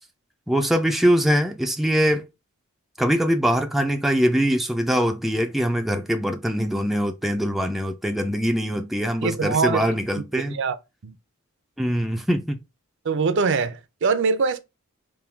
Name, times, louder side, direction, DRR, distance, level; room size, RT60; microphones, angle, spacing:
voice 1, 0.5-2.2 3.0-10.6 11.8-12.6, equal, ahead, 0.4 m, -22 dB
voice 2, 9.2-9.8 10.3-10.8 11.0-11.1 13.0-14.6, right 5 dB, 60° right, 0.5 m, -23 dB
3.6 x 2.2 x 4.3 m
head